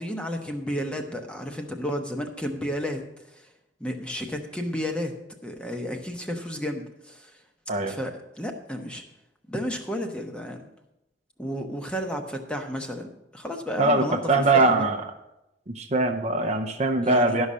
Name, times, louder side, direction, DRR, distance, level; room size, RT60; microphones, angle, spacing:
voice 1, 0.0-3.0 3.3-3.4 3.8-5.1 5.4-7.3 7.8-9.0 9.5-10.7 11.4-14.9 17.0-17.4, equal, 5° left, 4 dB, 0.9 m, -32 dB
voice 2, 13.8-15.0 15.7-17.5, right 2 dB, 35° right, 3 dB, 0.6 m, -22 dB
11.5 x 5.5 x 6.3 m, 0.91 s
head